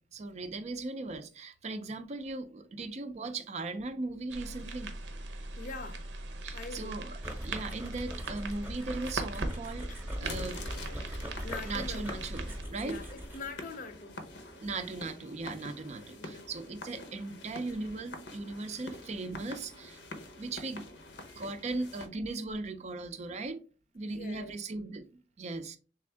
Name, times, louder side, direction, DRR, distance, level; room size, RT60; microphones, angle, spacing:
voice 1, 0.1-5.0 6.4-9.9 10.2-10.7 10.9-11.2 11.6-13.0 14.6-20.0 20.4-20.9 21.3-23.6 23.9-25.8, right 3 dB, 40° right, 0.4 m, -38 dB
sound 1, 4.3-12.6, right 2 dB, 85° right, 0.7 m, -40 dB
voice 2, 5.6-6.1 6.5-7.0 11.4-12.2 12.8-14.2 16.2-16.4 24.0-24.5, left 3 dB, 50° left, 0.5 m, -43 dB
sound 2, 7.2-13.6, equal, 10° right, 0.8 m, -42 dB
sound 3, 10.2-22.1, left 2 dB, 80° left, 0.8 m, -47 dB
3.4 x 3.4 x 3.3 m
head